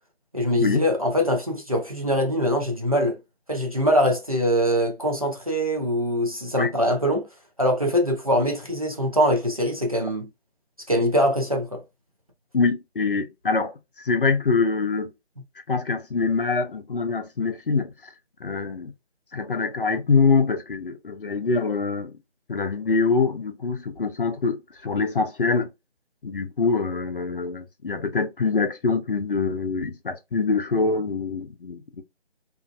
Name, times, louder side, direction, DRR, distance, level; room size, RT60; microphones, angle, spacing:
voice 1, 0.3-3.2 3.5-7.3 7.6-10.3 10.9-11.8, equal, 35° right, 0.4 m, -23 dB
voice 2, 12.5-15.1 15.7-18.1 18.4-18.9 19.3-22.1 22.5-25.7 26.2-32.0, left 4 dB, 55° left, 0.6 m, -24 dB
2.5 x 2.0 x 2.4 m
figure-of-eight pair, 160°, 33 cm